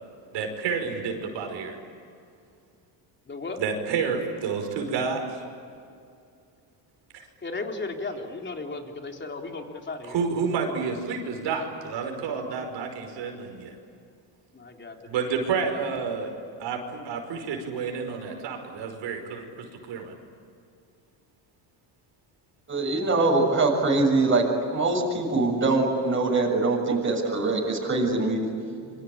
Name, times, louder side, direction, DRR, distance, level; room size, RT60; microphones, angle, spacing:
voice 1, 0.3-1.8 3.6-5.4 7.1-7.3 10.0-13.7 15.0-16.3 16.6-20.1, right 5 dB, 70° right, 4 dB, 5.5 m, -30 dB
voice 2, 3.3-3.6 7.4-10.2 14.5-15.2, left 3 dB, 25° left, 3 dB, 3.7 m, -35 dB
voice 3, 22.7-24.4 24.7-28.5, right 3 dB, 25° right, -1 dB, 6.9 m, -23 dB
27.0 x 25.0 x 8.7 m, 2.4 s
cardioid pair, 105°, 45 cm